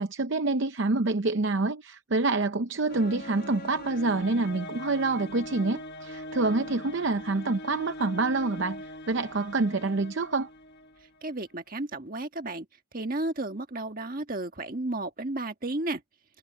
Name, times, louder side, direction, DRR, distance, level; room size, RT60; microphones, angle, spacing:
voice 1, 0.0-10.5, right 3 dB, 55° right, 0.7 m, -27 dB
sound 1, 2.9-11.2, left 1 dB, 50° left, 1.7 m, -42 dB
voice 2, 11.2-12.7 12.9-16.0, right 2 dB, 40° right, 1.6 m, -33 dB
head